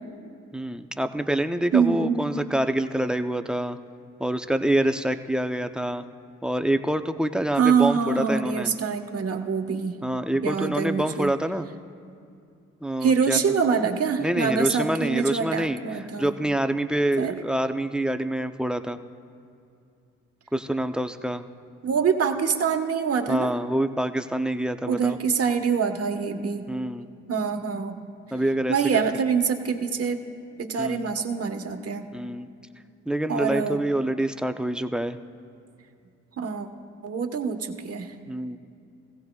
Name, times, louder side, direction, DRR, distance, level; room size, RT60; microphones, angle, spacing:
voice 1, 0.5-3.8 4.2-6.0 6.4-8.7 10.0-11.7 12.8-13.4 14.2-19.0 20.5-21.4 23.3-25.2 26.7-27.1 28.3-29.0 30.8-31.1 32.1-32.5 33.1-35.2 38.3-38.6, right 1 dB, 5° right, 8 dB, 0.6 m, -26 dB
voice 2, 1.7-2.2 7.5-10.0 10.4-11.3 13.0-16.3 17.2-17.4 21.8-23.5 24.9-26.6 27.3-27.9 28.7-30.2 30.6-32.1 33.3-33.8 36.4-36.7 37.0-38.2, right 6 dB, 50° right, 4 dB, 1.3 m, -25 dB
16.5 x 16.0 x 2.4 m, 2.5 s
supercardioid pair, 55°, 31 cm